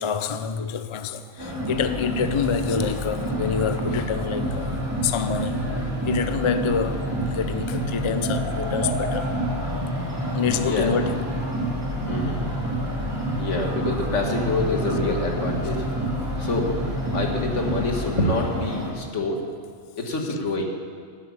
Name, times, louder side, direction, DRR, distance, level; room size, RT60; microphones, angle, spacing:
voice 1, 0.0-4.7 5.0-5.7 6.0-9.3 10.3-11.3, left 6 dB, 40° left, 0.4 m, -27 dB
sound 1, 1.4-18.9, right 1 dB, 20° right, 2.4 m, -28 dB
voice 2, 10.6-10.9 12.1-12.4 13.4-15.8 16.4-16.7 17.1-19.5 20.0-20.6, left 2 dB, 80° left, 1.9 m, -26 dB
11.5 x 8.0 x 8.5 m
omnidirectional pair, 1.2 m